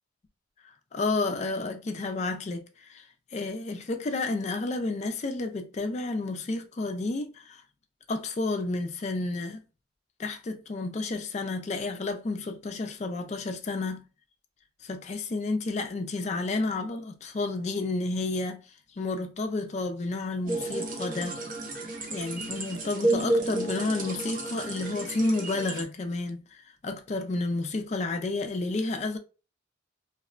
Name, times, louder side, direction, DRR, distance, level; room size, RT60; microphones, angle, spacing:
voice 1, 0.9-2.6 2.9-3.0 3.3-7.6 8.1-9.6 10.2-14.0 14.8-18.6 19.0-21.4 22.1-26.4 26.8-29.2, left 3 dB, 35° left, 0.3 m, -31 dB
sound 1, 20.4-25.8, right 2 dB, 45° right, 0.6 m, -31 dB
2.8 x 2.1 x 2.3 m
head